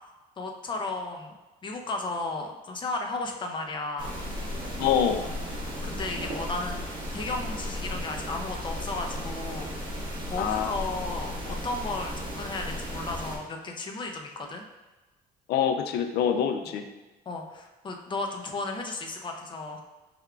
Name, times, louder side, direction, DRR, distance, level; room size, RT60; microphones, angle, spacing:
voice 1, 0.4-1.3 1.6-4.2 5.8-9.7 10.3-14.6 17.3-19.8, left 3 dB, 30° left, 2 dB, 0.6 m, -34 dB
sound 1, 4.0-13.4, equal, 30° right, 1.4 m, -35 dB
voice 2, 4.8-5.3 10.4-10.7 15.5-16.9, left 8 dB, 80° left, 7 dB, 0.5 m, -25 dB
4.7 x 3.5 x 2.3 m, 1.1 s
cardioid pair, 110°, 17 cm